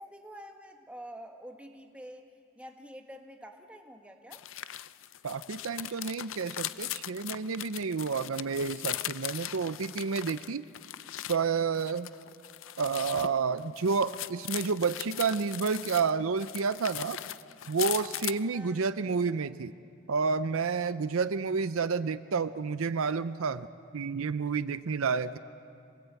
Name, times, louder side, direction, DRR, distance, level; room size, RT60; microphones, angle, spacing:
voice 1, 0.0-2.3 2.5-4.4 18.5-18.8, equal, 5° right, 3 dB, 1.4 m, -47 dB
sound 1, 4.3-11.4 11.7-16.1 16.4-18.4, left 13 dB, 60° left, 0.5 m, -39 dB
voice 2, 5.2-10.6 11.3-12.1 12.8-17.2 17.7-19.7 20.1-23.7 23.9-25.4, right 5 dB, 65° right, 13 dB, 0.6 m, -30 dB
27.0 x 19.5 x 8.2 m, 2.4 s
head